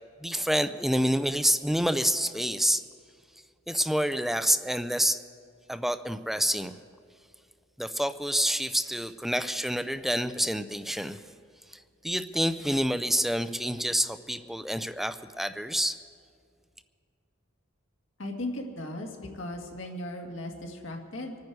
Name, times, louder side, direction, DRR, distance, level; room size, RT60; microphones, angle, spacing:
voice 1, 0.2-2.8 3.7-5.2 5.7-6.8 7.8-11.2 11.7-15.9, equal, ahead, 11 dB, 0.4 m, -28 dB
voice 2, 18.2-21.4, left 1 dB, 80° left, 1 dB, 2.0 m, -37 dB
26.0 x 9.6 x 4.7 m, 2.3 s
head